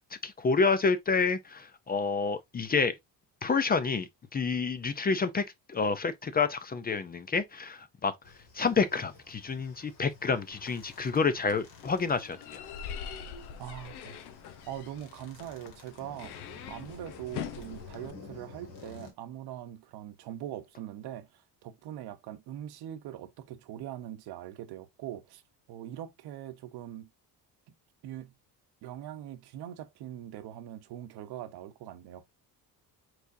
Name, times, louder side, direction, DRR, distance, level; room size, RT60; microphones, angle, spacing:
voice 1, 0.2-2.9 3.4-8.1 8.5-12.6, left 4 dB, 25° left, 0.5 m, -29 dB
sound 1, 8.2-19.1, left 4 dB, 55° left, 2.2 m, -52 dB
sound 2, 10.5-18.1, left 8 dB, 85° left, 0.9 m, -44 dB
voice 2, 13.6-14.3 14.7-25.4 25.7-27.1 28.0-28.3 28.8-32.2, right 11 dB, 75° right, 0.9 m, -42 dB
4.7 x 4.0 x 2.6 m
cardioid pair, 120°, 38 cm